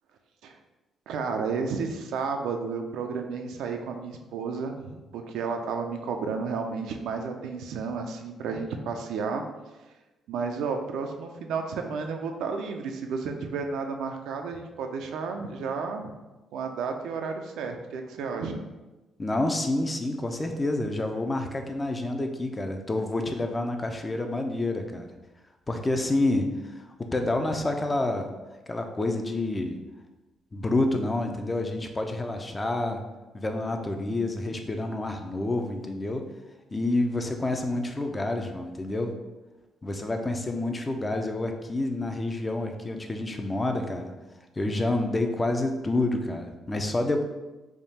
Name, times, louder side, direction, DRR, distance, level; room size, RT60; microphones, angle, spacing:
voice 1, 1.1-9.4 10.3-16.1 16.5-18.6, right 5 dB, 85° right, 4 dB, 0.4 m, -32 dB
voice 2, 19.2-25.1 25.7-28.3 28.7-29.8 30.5-33.0 33.3-36.3 36.7-39.1 39.8-44.1 44.6-47.2, left 2 dB, 20° left, 4 dB, 0.5 m, -28 dB
3.5 x 2.4 x 4.1 m, 1.1 s
cardioid pair, 90°, 0 cm